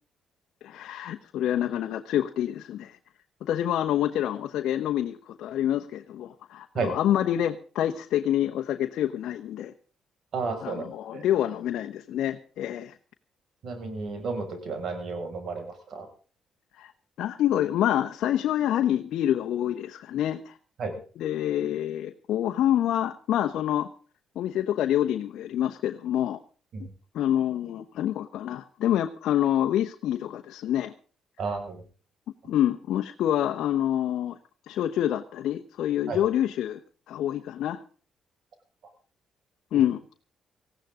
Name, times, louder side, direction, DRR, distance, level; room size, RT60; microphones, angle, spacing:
voice 1, 0.6-3.0 3.4-9.7 10.6-12.9 16.8-16.9 17.2-20.6 21.2-23.9 24.3-26.4 27.1-30.9 32.5-34.4 34.7-36.8 37.1-37.8 39.7-40.0, left 11 dB, 80° left, 5 dB, 1.1 m, -27 dB
voice 2, 10.3-11.3 13.6-16.1 20.8-21.0 26.7-26.9 31.4-31.8 32.4-32.5 36.1-36.2 39.7-39.8, right 4 dB, 60° right, 5 dB, 6.1 m, -32 dB
19.0 x 15.5 x 3.8 m, 0.40 s
cardioid pair, 90°, 0 cm